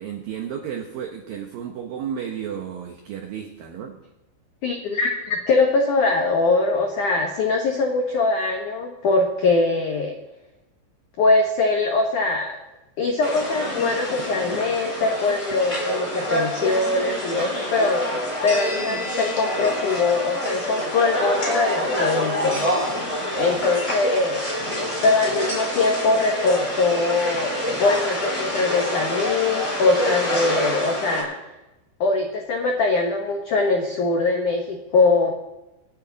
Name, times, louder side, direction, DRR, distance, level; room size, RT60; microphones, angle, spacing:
voice 1, 0.0-4.0 23.2-23.6, right 8 dB, 85° right, 4 dB, 2.0 m, -33 dB
voice 2, 4.6-10.1 11.2-12.6 13.0-18.0 18.4-22.6 23.4-24.5 25.0-27.5 27.8-31.4 32.0-35.3, left 3 dB, 90° left, 2 dB, 1.7 m, -22 dB
sound 1, 13.2-31.2, equal, 5° left, 3.9 m, -26 dB
26.5 x 9.9 x 4.0 m, 0.97 s
omnidirectional pair, 5.7 m